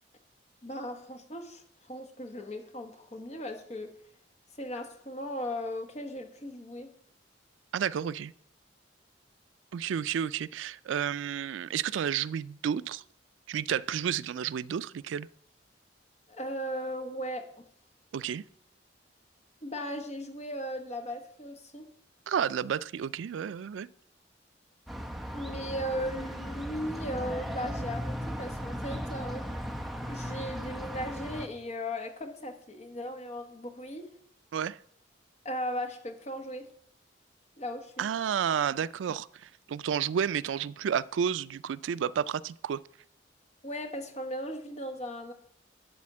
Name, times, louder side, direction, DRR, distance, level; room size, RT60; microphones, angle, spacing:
voice 1, 0.6-3.9 4.6-6.9 16.3-17.5 19.6-21.9 25.3-29.5 30.0-34.1 35.4-36.7 37.6-38.1 43.6-45.3, equal, 35° left, 1.2 m, -37 dB
voice 2, 7.7-8.3 9.7-13.0 13.5-15.3 18.1-18.4 22.3-23.9 34.5-34.8 38.0-42.8, right 8 dB, 85° right, 0.3 m, -31 dB
sound 1, 24.9-31.5, equal, ahead, 0.7 m, -37 dB
12.0 x 4.2 x 7.3 m
head